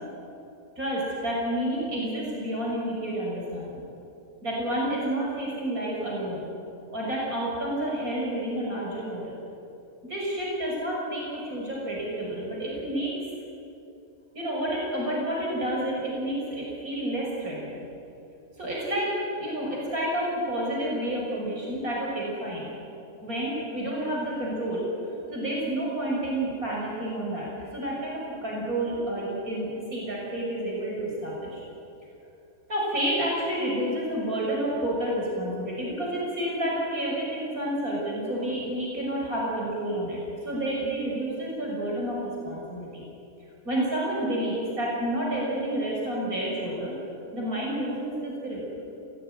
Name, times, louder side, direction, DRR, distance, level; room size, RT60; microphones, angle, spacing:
voice 1, 0.8-3.8 4.4-6.4 6.9-9.4 10.1-13.1 14.3-17.8 18.6-22.7 23.2-31.6 32.7-42.2 42.4-43.0 43.6-47.0 47.3-48.6, right 1 dB, 70° right, -3 dB, 6.6 m, -30 dB
29.0 x 17.0 x 9.9 m, 2.7 s
omnidirectional pair, 1.6 m